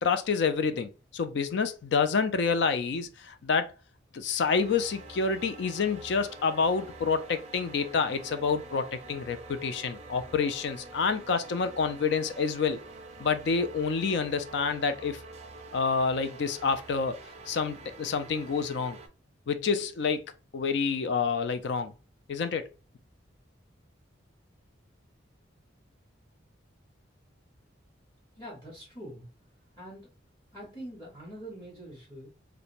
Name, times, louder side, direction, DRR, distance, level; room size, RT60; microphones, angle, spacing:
voice 1, 0.0-3.7 4.1-12.8 13.2-15.2 15.7-17.2 17.5-19.0 19.5-21.9 22.3-22.7, left 5 dB, 60° left, 0.3 m, -28 dB
sound 1, 4.4-19.1, right 3 dB, 35° right, 0.3 m, -47 dB
voice 2, 28.4-29.3 29.7-30.1 30.5-32.3, right 1 dB, 20° left, 0.9 m, -44 dB
2.5 x 2.1 x 2.9 m
head